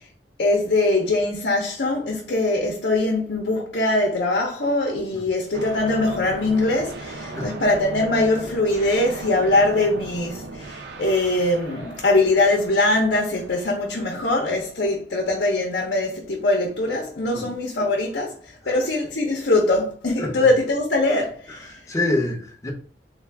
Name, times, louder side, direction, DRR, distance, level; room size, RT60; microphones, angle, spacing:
voice 1, 0.4-18.4 18.7-21.7, left 2 dB, 70° left, 0.7 m, -22 dB
sound 1, 5.5-14.6, right 2 dB, 70° right, 0.6 m, -37 dB
voice 2, 21.7-22.7, left 2 dB, 20° left, 0.7 m, -27 dB
3.4 x 2.4 x 3.4 m
head